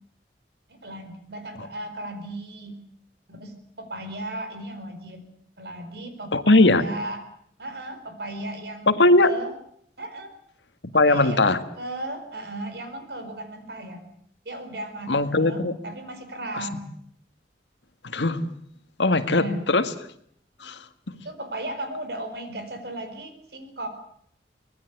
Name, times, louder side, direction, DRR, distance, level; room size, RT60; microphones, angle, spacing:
voice 1, 0.7-2.8 3.3-5.2 5.6-7.2 7.6-9.5 10.0-10.3 11.1-14.0 14.4-16.9 19.3-19.6 21.1-23.9, right 1 dB, 65° right, 4.5 m, -36 dB
voice 2, 6.3-6.9 8.9-9.3 10.9-11.6 15.1-15.7 16.5-16.7 18.0-18.5 19.0-19.9 20.6-20.9, left 2 dB, 85° left, 1.9 m, -19 dB
24.5 x 19.5 x 8.1 m
head